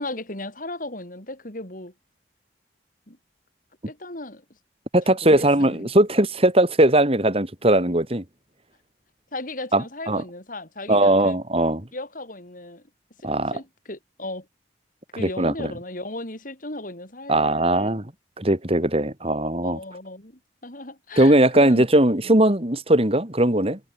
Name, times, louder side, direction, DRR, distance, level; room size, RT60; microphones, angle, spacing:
voice 1, 0.0-1.9 3.1-3.2 3.9-4.4 5.1-5.9 9.3-11.4 11.9-12.8 13.2-14.5 15.1-18.0 19.6-21.9, left 2 dB, 50° left, 4.8 m, -36 dB
voice 2, 4.9-8.2 9.7-10.2 10.9-11.9 13.2-13.6 15.2-15.7 17.3-18.0 18.4-19.8 21.2-23.8, right 1 dB, 35° right, 3.2 m, -19 dB
head